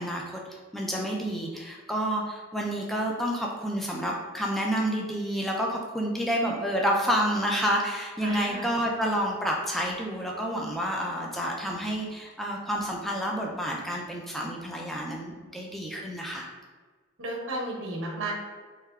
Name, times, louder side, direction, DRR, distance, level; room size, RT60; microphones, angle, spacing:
voice 1, 0.0-16.5, equal, ahead, -2 dB, 0.3 m, -29 dB
voice 2, 8.2-8.7 17.2-18.3, right 2 dB, 75° right, -1 dB, 0.9 m, -33 dB
3.7 x 3.2 x 2.3 m, 1.5 s
head